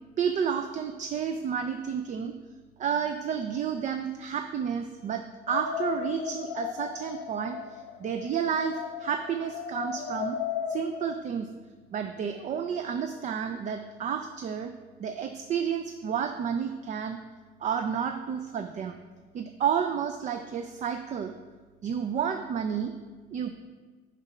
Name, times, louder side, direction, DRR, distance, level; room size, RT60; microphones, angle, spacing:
voice 1, 0.2-2.3 2.8-10.4 10.7-11.5 11.9-14.7 15.0-17.2 17.6-19.0 19.3-21.3 21.8-22.9 23.3-23.5, right 7 dB, 45° right, 7 dB, 0.5 m, -31 dB
sound 1, 5.5-11.2, left 7 dB, 85° left, 0.8 m, -35 dB
6.7 x 4.9 x 5.6 m, 1.4 s
cardioid pair, 110°, 17 cm